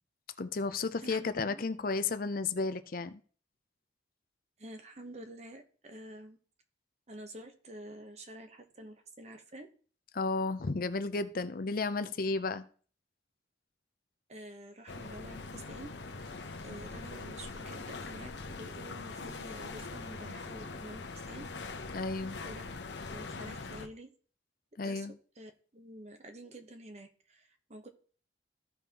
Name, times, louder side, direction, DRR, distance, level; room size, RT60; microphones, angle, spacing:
voice 1, 0.4-3.2 10.1-12.6 21.9-22.4 24.8-25.1, left 3 dB, 50° left, 0.5 m, -33 dB
voice 2, 1.0-1.6 4.6-6.4 7.1-9.7 14.3-16.3 16.6-21.5 22.4-22.6 23.1-24.1 24.8-25.1 25.4-27.9, right 1 dB, 35° right, 1.0 m, -48 dB
sound 1, 14.9-23.9, left 3 dB, 75° left, 0.9 m, -42 dB
14.5 x 5.5 x 2.9 m
head